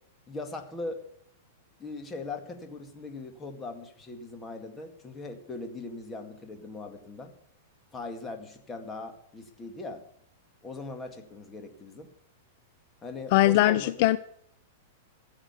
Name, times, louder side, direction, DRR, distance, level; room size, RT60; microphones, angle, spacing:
voice 1, 0.3-1.0 1.8-7.3 7.9-10.0 10.6-12.1 13.0-14.1, left 3 dB, 15° left, 6 dB, 2.0 m, -40 dB
voice 2, 13.3-14.2, left 16 dB, 50° left, 16 dB, 0.5 m, -21 dB
15.0 x 8.0 x 8.2 m, 0.68 s
supercardioid pair, 155°, 0 cm